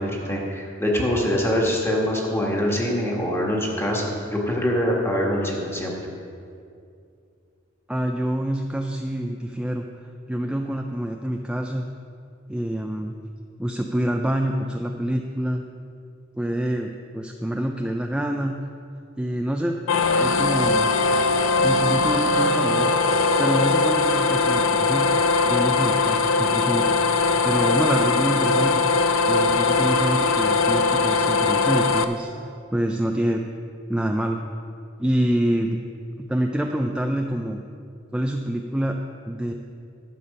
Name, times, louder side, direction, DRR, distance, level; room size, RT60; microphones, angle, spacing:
voice 1, 0.0-5.9, equal, 15° left, -2 dB, 1.7 m, -24 dB
voice 2, 7.9-9.9 10.3-11.8 12.5-13.2 13.6-15.6 16.3-18.5 19.2-19.8 20.2-20.9 21.6-22.9 23.4-25.1 25.4-27.0 27.4-28.9 29.2-33.4 33.9-34.4 35.0-35.8 36.2-37.6 38.1-39.0 39.3-39.5, right 1 dB, 5° right, 3 dB, 0.4 m, -26 dB
sound 1, 19.9-32.0, left 3 dB, 80° left, 0.5 m, -20 dB
12.0 x 7.0 x 5.4 m, 2.5 s
head